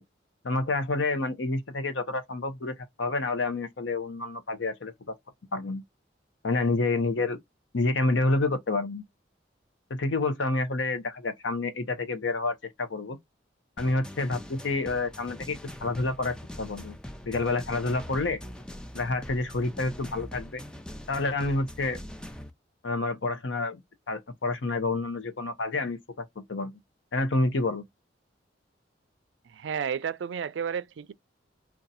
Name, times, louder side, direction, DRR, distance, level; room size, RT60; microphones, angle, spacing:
voice 1, 0.4-5.1 5.5-5.8 6.4-7.4 7.7-9.0 9.9-13.2 13.8-17.0 17.2-18.4 18.9-20.6 21.1-22.0 22.8-23.8 24.1-26.7 27.1-27.8, left 3 dB, 80° left, 0.7 m, -28 dB
sound 1, 13.8-22.5, equal, 5° left, 0.3 m, -42 dB
voice 2, 29.5-31.1, right 7 dB, 75° right, 0.4 m, -32 dB
2.7 x 2.3 x 4.0 m
head